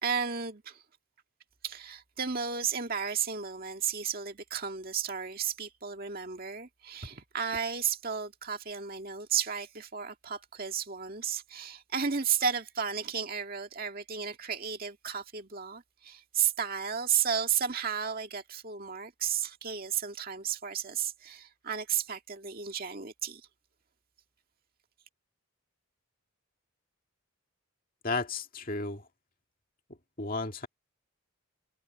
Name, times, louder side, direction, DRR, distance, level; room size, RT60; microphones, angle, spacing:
voice 1, 0.0-0.8 1.6-23.4, right 7 dB, 40° right, 2.1 m, -33 dB
voice 2, 28.0-29.0 30.2-30.7, left 3 dB, 40° left, 2.3 m, -33 dB
head